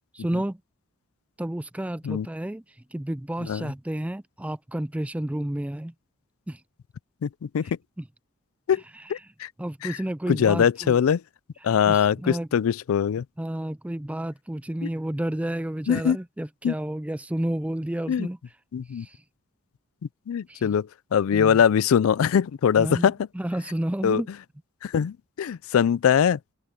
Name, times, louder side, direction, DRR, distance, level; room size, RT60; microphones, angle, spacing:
voice 1, 0.1-0.6 1.4-2.6 2.9-5.9 6.5-6.6 7.6-7.7 8.0-8.1 8.9-9.1 9.6-11.0 11.9-12.5 13.4-18.4 18.9-19.2 20.5-20.7 21.3-21.6 22.8-24.3, right 1 dB, 5° right, 0.3 m, -31 dB
voice 2, 9.1-9.5 10.3-11.2 11.6-13.2 15.9-16.2 16.6-16.7 18.1-18.3 18.7-19.1 20.3-20.9 21.1-23.1 24.0-24.2 24.8-26.5, left 8 dB, 75° left, 0.4 m, -22 dB
head